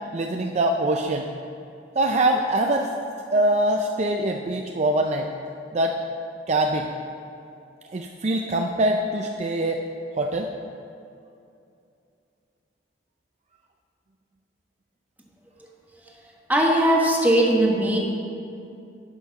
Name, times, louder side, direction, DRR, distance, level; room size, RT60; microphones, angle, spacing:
voice 1, 0.1-1.3 2.0-2.9 3.3-5.3 5.7-5.9 6.5-6.9 7.9-9.8 10.2-10.5, right 1 dB, 40° right, 3 dB, 0.4 m, -23 dB
voice 2, 16.5-18.0, right 1 dB, 10° right, -1 dB, 1.2 m, -19 dB
10.5 x 5.8 x 5.9 m, 2.6 s
head